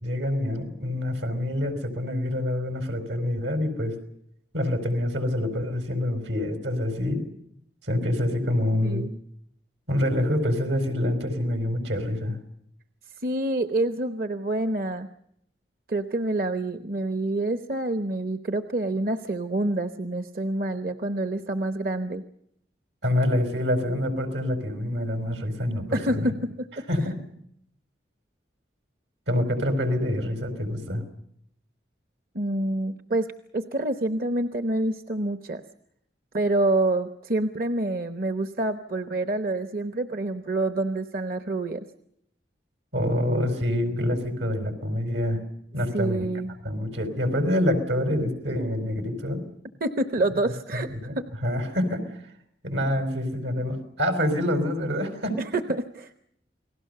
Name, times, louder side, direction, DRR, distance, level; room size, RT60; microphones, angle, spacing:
voice 1, 0.0-3.9 4.5-7.2 7.8-9.1 9.9-12.4 23.0-26.3 26.9-27.2 29.3-31.0 42.9-45.4 45.7-46.3 46.6-49.4 50.9-51.2 51.4-52.3 52.6-55.4, left 1 dB, 85° right, 8 dB, 5.1 m, -26 dB
voice 2, 8.8-9.1 13.2-15.1 15.9-22.2 25.9-26.7 32.3-33.3 33.5-35.6 36.3-41.8 45.9-46.5 49.8-50.9 51.2-51.3 55.5-56.1, right 2 dB, 50° right, 8 dB, 1.0 m, -27 dB
29.0 x 20.0 x 6.8 m, 0.73 s
head